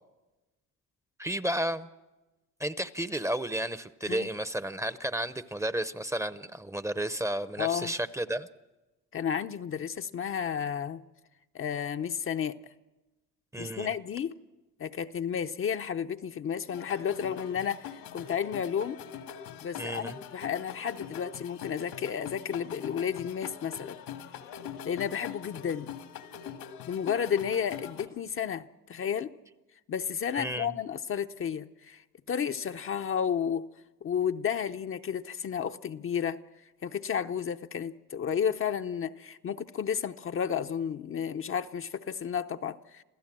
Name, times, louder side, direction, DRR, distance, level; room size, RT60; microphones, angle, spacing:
voice 1, 1.2-1.9 2.6-8.5 13.5-13.9 19.8-20.2 30.4-30.7, right 1 dB, 10° right, 0.7 m, -32 dB
voice 2, 7.6-7.9 9.1-11.0 11.5-12.6 13.6-14.3 14.8-19.0 19.6-24.0 24.8-25.9 26.9-29.3 29.9-32.0 32.3-33.7 34.0-36.4 36.8-43.0, left 8 dB, 40° left, 0.7 m, -32 dB
sound 1, 16.7-28.1, left 8 dB, 80° left, 2.0 m, -43 dB
28.0 x 15.5 x 7.6 m
cardioid pair, 100°, 34 cm